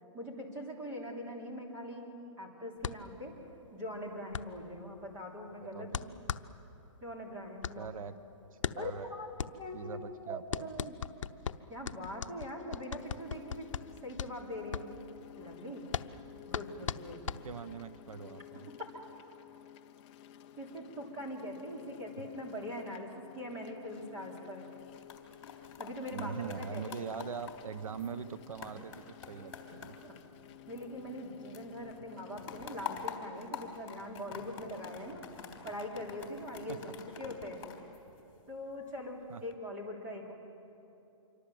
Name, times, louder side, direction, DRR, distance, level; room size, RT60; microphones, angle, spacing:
voice 1, 0.1-3.3 3.7-6.1 7.0-7.9 8.7-9.3 9.6-11.0 11.7-13.7 14.0-14.9 15.4-15.9 16.5-17.3 18.8-18.9 20.6-24.6 25.8-26.4 26.7-27.1 30.0-30.1 30.7-35.2 35.6-37.6 38.5-40.3, equal, 15° right, -1 dB, 3.4 m, -42 dB
sound 1, 2.8-17.9, left 7 dB, 70° left, 0.8 m, -40 dB
voice 2, 7.8-8.2 8.7-9.0 9.7-10.7 17.2-18.7 26.1-30.0 36.7-36.8 39.3-39.4, right 6 dB, 85° right, 13 dB, 1.1 m, -42 dB
sound 2, 12.9-32.7, left 11 dB, 15° left, 0.5 m, -53 dB
sound 3, 24.8-31.3 31.5-38.7 39.2-39.5, left 7 dB, 45° left, 3.6 m, -47 dB
26.5 x 24.0 x 7.9 m, 2.9 s
hypercardioid pair, 170°, 17 cm